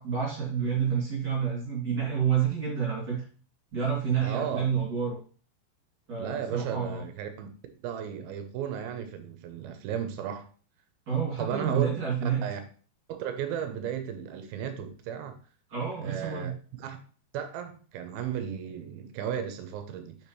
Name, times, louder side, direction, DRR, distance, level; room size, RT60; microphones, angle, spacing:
voice 1, 0.0-3.2 3.7-5.2 6.1-7.0 11.1-12.4 15.7-16.5, right 7 dB, 30° right, 2.2 m, -29 dB
voice 2, 4.2-4.7 6.2-7.5 7.8-10.5 11.4-11.9 12.4-12.6 13.2-15.4 16.0-16.5 16.8-17.0 17.3-20.2, right 8 dB, 80° right, 2.2 m, -34 dB
7.1 x 6.1 x 3.1 m
omnidirectional pair, 5.1 m